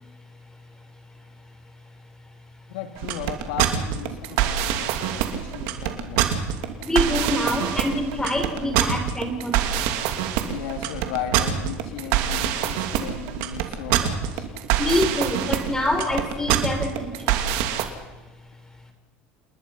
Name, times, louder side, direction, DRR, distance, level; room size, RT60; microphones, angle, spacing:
voice 1, 2.7-6.3 10.4-14.5, left 9 dB, 85° left, 6 dB, 3.3 m, -35 dB
sound 1, 3.0-17.8, right 10 dB, 80° right, 2.8 m, -24 dB
voice 2, 6.8-9.6 14.8-17.4, left 1 dB, 15° left, 6 dB, 3.9 m, -25 dB
29.5 x 20.0 x 5.8 m, 1.2 s
supercardioid pair, 115°, 5 cm